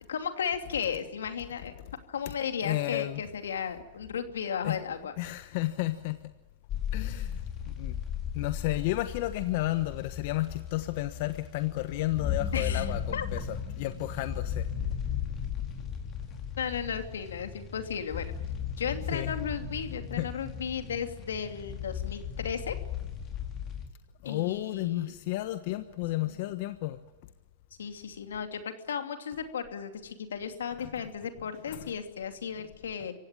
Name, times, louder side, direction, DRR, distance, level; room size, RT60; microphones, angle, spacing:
voice 1, 0.1-1.7 2.1-5.1 12.5-12.9 13.1-13.3 16.6-18.3 18.8-22.7 24.2-25.2 26.2-26.6 27.8-33.1, left 7 dB, 85° left, 7 dB, 2.7 m, -35 dB
voice 2, 2.6-3.2 4.6-4.8 5.2-6.2 6.9-7.9 8.3-14.7 19.1-19.4 20.2-20.3 24.2-27.0 30.8-31.0 31.7-31.9, left 17 dB, 55° left, 10 dB, 1.2 m, -32 dB
sound 1, 6.7-23.9, left 8 dB, 30° left, 4.8 m, -36 dB
26.5 x 16.0 x 9.0 m, 1.1 s
hypercardioid pair, 125°, 0 cm